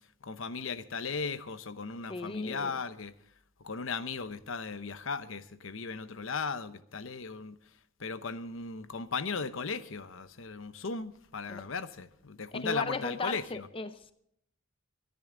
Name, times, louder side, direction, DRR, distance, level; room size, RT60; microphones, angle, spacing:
voice 1, 0.2-3.1 3.6-7.6 8.0-13.7, left 4 dB, 65° left, 13 dB, 0.9 m, -37 dB
voice 2, 2.1-2.8 11.5-11.6 12.5-14.1, left 3 dB, 25° left, 11 dB, 0.6 m, -36 dB
24.5 x 10.5 x 3.8 m, 0.73 s
head